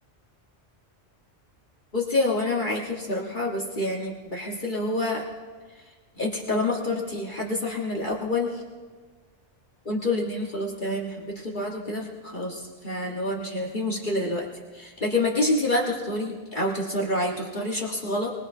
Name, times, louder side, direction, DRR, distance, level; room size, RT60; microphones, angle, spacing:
voice 1, 1.9-5.3 6.2-8.6 9.8-14.5 14.7-18.3, left 2 dB, 45° left, -2 dB, 1.5 m, -27 dB
24.5 x 19.5 x 2.7 m, 1.5 s
omnidirectional pair, 1.2 m